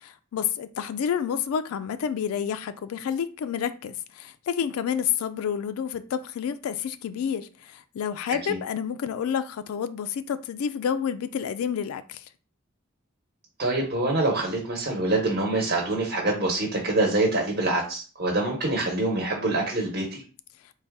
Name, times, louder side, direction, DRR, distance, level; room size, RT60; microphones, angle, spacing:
voice 1, 0.0-12.2, left 8 dB, 90° left, 0.3 m, -29 dB
voice 2, 13.6-20.2, right 2 dB, 45° right, 0.9 m, -25 dB
3.9 x 2.3 x 3.5 m
head